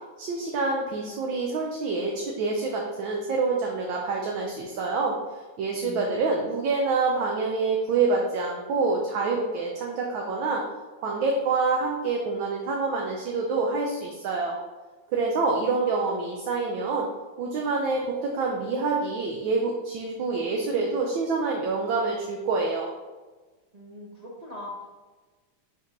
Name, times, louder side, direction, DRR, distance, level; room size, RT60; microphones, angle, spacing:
voice 1, 0.2-5.2 5.6-10.6 11.0-14.6 15.1-17.1 17.4-22.9, right 3 dB, 70° right, 0 dB, 1.4 m, -26 dB
voice 2, 5.7-6.4 23.7-24.9, left 1 dB, 50° right, -5 dB, 0.4 m, -41 dB
5.0 x 4.6 x 5.2 m, 1.3 s
omnidirectional pair, 2.4 m